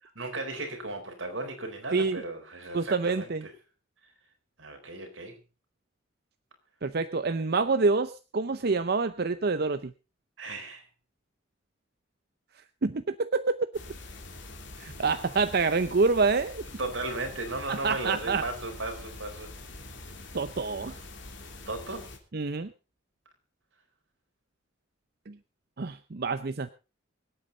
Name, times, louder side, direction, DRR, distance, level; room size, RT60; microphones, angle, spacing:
voice 1, 0.2-3.5 4.6-5.4 10.4-10.8 16.8-19.5 21.7-22.1, right 2 dB, 85° right, 4 dB, 4.2 m, -36 dB
voice 2, 2.7-3.4 6.8-9.9 12.8-13.6 14.8-16.6 17.7-18.4 20.3-21.0 22.3-22.7 25.3-25.4 25.8-26.7, right 4 dB, 55° right, 11 dB, 0.7 m, -27 dB
sound 1, 13.7-22.2, left 2 dB, 65° left, 2.9 m, -44 dB
24.5 x 8.6 x 3.9 m, 0.32 s
head